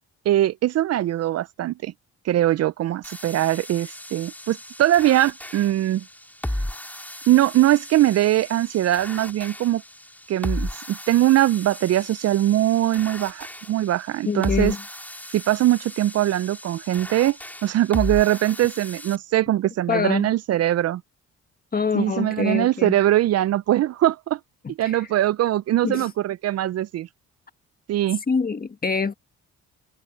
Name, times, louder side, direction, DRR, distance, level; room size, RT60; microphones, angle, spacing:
voice 1, 0.3-1.9 2.2-6.0 7.3-9.8 10.3-14.7 15.3-17.4 17.6-21.0 21.9-24.4 24.8-27.1 27.9-28.2, right 14 dB, 55° right, 0.4 m, -21 dB
sound 1, 3.0-19.2, left 1 dB, 5° left, 4.7 m, -35 dB
voice 2, 14.3-14.8 19.9-20.3 21.7-22.9 24.6-25.0 25.8-26.1 28.3-29.1, left 5 dB, 30° left, 1.8 m, -25 dB
cardioid pair, 90°, 30 cm